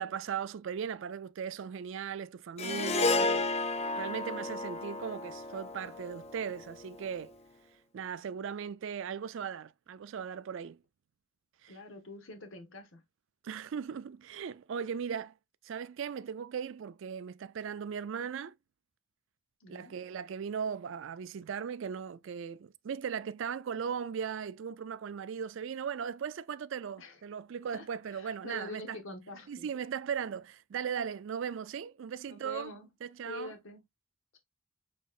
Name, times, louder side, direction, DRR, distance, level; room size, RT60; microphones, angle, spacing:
voice 1, 0.0-3.3 4.0-7.3 7.9-10.8 11.6-11.8 13.4-15.3 15.6-18.6 19.7-29.0 29.5-32.7 33.0-33.5, right 7 dB, 60° right, 0.3 m, -38 dB
Harp, 2.6-7.0, left 3 dB, 30° left, 0.5 m, -32 dB
voice 2, 11.7-13.0 19.6-20.0 27.0-27.2 27.7-29.7 32.3-32.9 33.2-33.8, left 2 dB, 65° left, 1.1 m, -46 dB
6.5 x 3.1 x 2.4 m
head